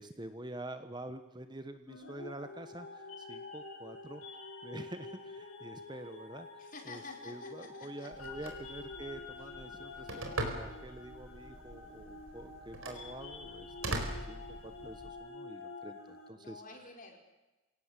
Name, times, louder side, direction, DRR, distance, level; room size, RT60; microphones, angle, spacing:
voice 1, 0.0-4.2 4.6-16.6, right 1 dB, 20° right, 9 dB, 1.1 m, -47 dB
sound 1, 1.9-16.3, left 3 dB, 80° left, 6.8 m, -48 dB
voice 2, 6.6-8.5 9.4-9.5 10.0-10.3 16.3-17.2, left 3 dB, 40° left, 2 dB, 4.8 m, -51 dB
Telephone, 8.1-15.1, right 2 dB, 75° right, 4.5 m, -42 dB
26.0 x 18.0 x 8.3 m, 1.1 s
head